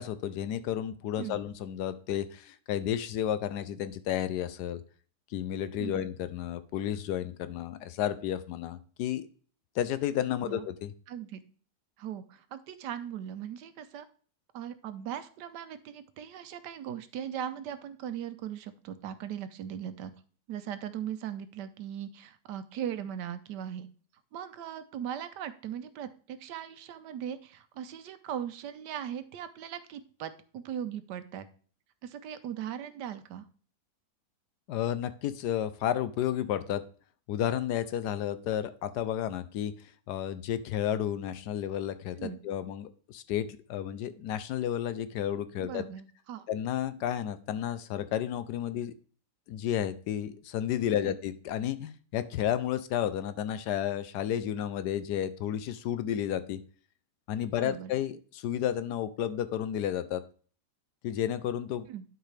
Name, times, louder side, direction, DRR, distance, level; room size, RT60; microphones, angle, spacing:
voice 1, 0.0-4.8 5.3-9.3 9.8-10.9 34.7-36.8 37.3-39.7 40.1-45.8 46.5-48.9 49.5-56.6 57.3-60.2 61.0-61.9, left 10 dB, 75° left, 13 dB, 1.2 m, -32 dB
voice 2, 11.1-11.4 12.0-14.1 14.5-20.1 20.5-23.9 24.3-31.5 32.0-33.5 42.2-42.4 45.6-46.5 51.0-51.2 57.6-57.9 61.9-62.0, right 9 dB, 80° right, 12 dB, 1.3 m, -39 dB
11.0 x 4.7 x 3.3 m, 0.43 s
omnidirectional pair, 1.8 m